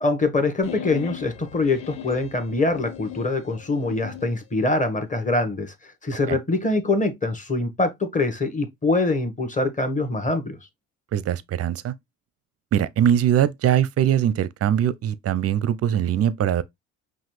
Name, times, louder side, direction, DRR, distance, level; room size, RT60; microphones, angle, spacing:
voice 1, 0.0-10.6, left 2 dB, 15° left, 1.2 m, -24 dB
sound 1, 0.6-4.4, left 9 dB, 65° left, 0.7 m, -38 dB
voice 2, 11.1-11.9 12.7-16.6, right 10 dB, 35° right, 0.6 m, -21 dB
5.7 x 2.5 x 3.0 m
figure-of-eight pair, 50°, 43 cm